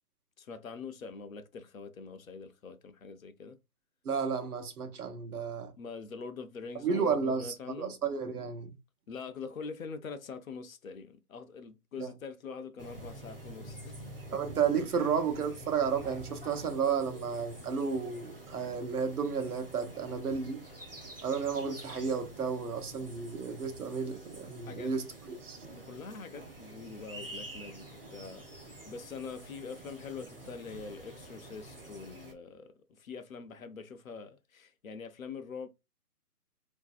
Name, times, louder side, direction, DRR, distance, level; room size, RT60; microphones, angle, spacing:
voice 1, 0.4-3.6 5.8-8.0 9.1-14.0 14.3-14.4 23.2-23.3 24.7-24.9 25.8-28.4 28.9-35.7, left 5 dB, 60° left, 0.5 m, -44 dB
voice 2, 4.0-5.7 6.8-8.7 12.0-12.1 14.3-20.6 21.2-25.6, right 6 dB, 75° right, 0.8 m, -32 dB
sound 1, 12.8-32.3, right 1 dB, 40° right, 0.5 m, -48 dB
3.2 x 2.6 x 2.4 m
hypercardioid pair, 175°, 46 cm